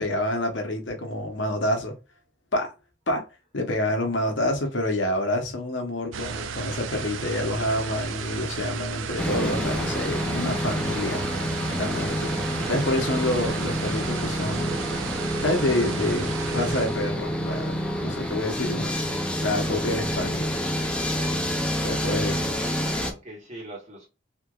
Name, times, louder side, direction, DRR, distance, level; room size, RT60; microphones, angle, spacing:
voice 1, 0.0-1.9 2.5-2.7 3.1-3.2 3.5-11.2 11.8-12.3 12.7-14.8 15.4-18.9 19.4-20.5 21.8-22.5, left 1 dB, 70° left, 0.9 m, -27 dB
sound 1, 6.1-17.1, right 6 dB, 85° right, 0.4 m, -34 dB
sound 2, 9.2-23.1, equal, 5° left, 0.5 m, -28 dB
voice 2, 22.8-24.1, right 1 dB, 35° right, 1.5 m, -43 dB
3.3 x 2.9 x 2.4 m
head